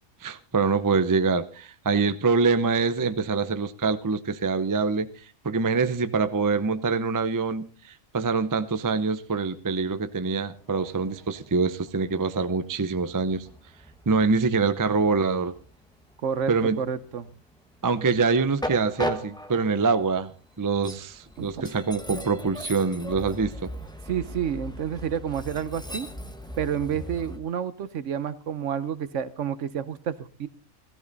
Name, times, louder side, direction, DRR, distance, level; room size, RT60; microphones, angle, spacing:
voice 1, 0.2-5.1 5.4-13.5 14.1-15.5 16.5-16.8 17.8-20.3 20.6-23.7, right 4 dB, 25° right, 11 dB, 0.4 m, -25 dB
Train, 10.6-27.4, equal, 5° left, 1.0 m, -39 dB
voice 2, 16.8-17.3 21.4-21.7 24.1-26.1 26.6-30.5, right 8 dB, 65° right, 15 dB, 1.1 m, -29 dB
15.5 x 14.0 x 4.0 m, 0.39 s
omnidirectional pair, 1.4 m